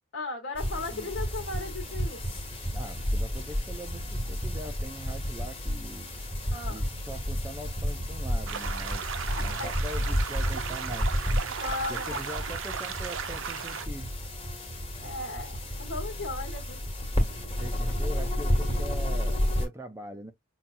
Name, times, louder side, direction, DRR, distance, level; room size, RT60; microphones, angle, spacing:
voice 1, 0.1-2.2 6.5-6.8 9.3-9.7 11.4-12.2 15.0-16.8, left 2 dB, 65° left, 1.2 m, -36 dB
sound 1, 0.5-19.7, equal, 25° left, 1.3 m, -31 dB
voice 2, 2.7-6.1 6.7-9.1 9.3-11.1 11.9-14.1 17.6-20.3, right 1 dB, 15° right, 0.4 m, -42 dB
sound 2, 8.5-13.9, right 7 dB, 70° right, 0.5 m, -36 dB
5.5 x 2.3 x 2.4 m
head